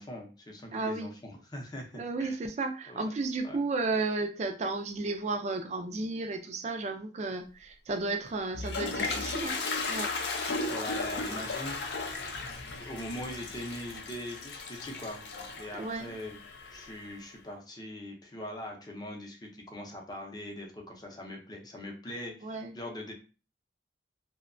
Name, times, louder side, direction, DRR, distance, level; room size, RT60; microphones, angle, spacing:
voice 1, 0.0-2.4 2.9-3.0 3.4-3.6 10.6-11.8 12.7-15.2 15.5-16.4 16.7-23.1, left 1 dB, 20° left, 1 dB, 0.6 m, -41 dB
voice 2, 0.7-1.1 1.9-9.6 9.9-10.1 15.8-16.1 22.4-22.7, right 3 dB, 40° right, 5 dB, 0.3 m, -33 dB
Toilet flush, 8.3-17.1, left 3 dB, 70° left, 0.5 m, -36 dB
2.7 x 2.1 x 2.5 m, 0.34 s
head